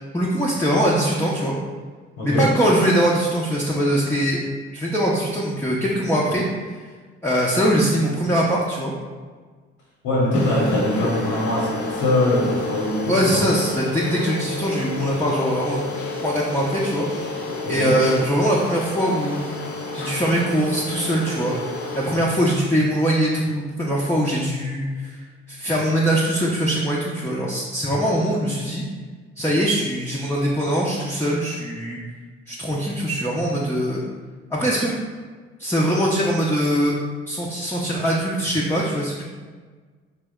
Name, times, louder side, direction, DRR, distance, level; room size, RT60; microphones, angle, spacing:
voice 1, 0.1-1.5 2.2-4.4 4.7-6.8 7.2-8.9 13.1-15.8 16.2-19.4 19.9-21.5 22.0-28.8 29.4-32.0 32.5-34.0 34.5-34.9 35.6-36.9 37.3-39.2, equal, 5° left, -5 dB, 0.6 m, -22 dB
voice 2, 2.2-2.5 10.0-13.4 17.4-18.0, left 1 dB, 70° left, -5 dB, 0.9 m, -22 dB
sound 1, 10.3-22.2, left 2 dB, 90° left, 0.5 m, -30 dB
4.1 x 2.1 x 3.6 m, 1.4 s
hypercardioid pair, 45°, 32 cm